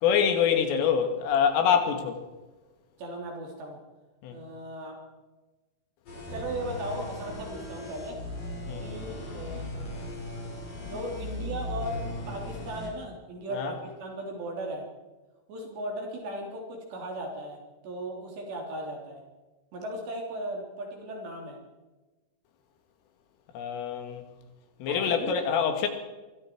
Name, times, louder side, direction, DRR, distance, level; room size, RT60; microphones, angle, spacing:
voice 1, 0.0-2.2 4.2-4.4 8.7-8.9 13.5-13.7 23.5-24.2 24.8-25.9, left 7 dB, 90° left, 5 dB, 4.8 m, -25 dB
voice 2, 3.0-3.8 4.3-5.0 6.3-8.2 8.8-9.7 10.8-12.0 12.3-14.9 15.5-19.2 19.7-21.6 24.9-25.4, right 1 dB, 60° right, 0 dB, 5.3 m, -37 dB
sound 1, 6.1-12.9, left 1 dB, 45° left, 7.0 m, -37 dB
25.0 x 23.5 x 4.7 m, 1.2 s
omnidirectional pair, 5.6 m